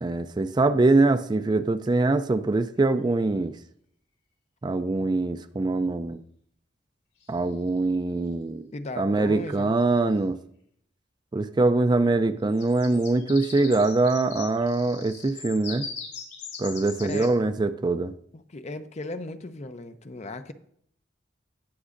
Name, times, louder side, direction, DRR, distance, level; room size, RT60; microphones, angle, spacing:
voice 1, 0.0-3.5 4.6-6.2 7.3-8.7 9.0-10.4 11.3-15.9 16.6-18.1, right 2 dB, 25° right, 0.4 m, -23 dB
sound 1, 7.2-7.8 9.4-9.5 9.8-10.1 12.4-17.3, left 6 dB, 75° left, 4.3 m, -41 dB
voice 2, 8.7-9.7 17.0-17.4 18.3-20.5, left 2 dB, 40° left, 0.6 m, -36 dB
18.0 x 6.1 x 2.5 m
head